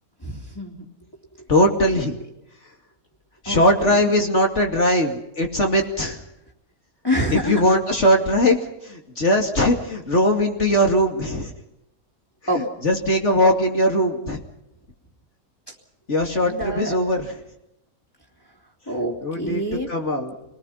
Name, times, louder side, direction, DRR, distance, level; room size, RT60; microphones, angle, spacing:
voice 1, 0.2-0.9 3.4-4.1 7.0-7.8 12.5-12.6 15.7-15.8 16.4-17.0 18.9-19.9, equal, 15° left, -3 dB, 3.1 m, -27 dB
voice 2, 1.5-2.2 3.4-6.2 7.3-11.5 12.5-14.4 16.1-17.3 19.2-19.6 19.9-20.3, equal, 55° left, 2 dB, 2.9 m, -20 dB
29.0 x 20.0 x 5.8 m, 0.85 s
omnidirectional pair, 1.5 m